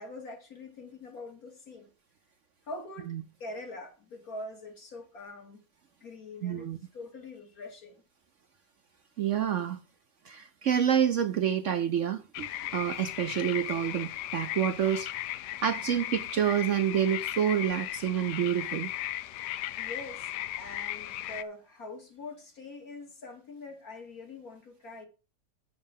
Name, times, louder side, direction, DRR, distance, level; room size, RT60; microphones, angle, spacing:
voice 1, 0.0-1.9 2.7-3.1 3.4-5.6 6.0-8.0 19.8-20.3 20.6-25.1, left 2 dB, 60° left, 2.9 m, -44 dB
voice 2, 6.4-6.8 9.2-9.8 10.3-12.5 12.7-15.1 15.6-18.9, right 9 dB, 60° right, 0.8 m, -28 dB
sound 1, 12.3-21.4, left 13 dB, 85° left, 1.2 m, -37 dB
7.6 x 6.1 x 7.2 m
omnidirectional pair, 1.7 m